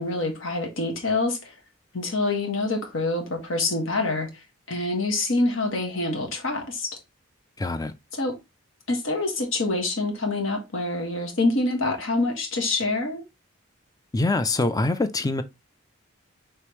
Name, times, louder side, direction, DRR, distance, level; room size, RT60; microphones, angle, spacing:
voice 1, 0.0-1.5 1.9-4.3 4.7-7.0 8.1-8.4 8.9-13.2, left 2 dB, 70° left, 1.4 m, -26 dB
voice 2, 7.6-7.9 14.1-15.4, left 2 dB, 20° left, 0.4 m, -24 dB
5.1 x 3.3 x 3.1 m
head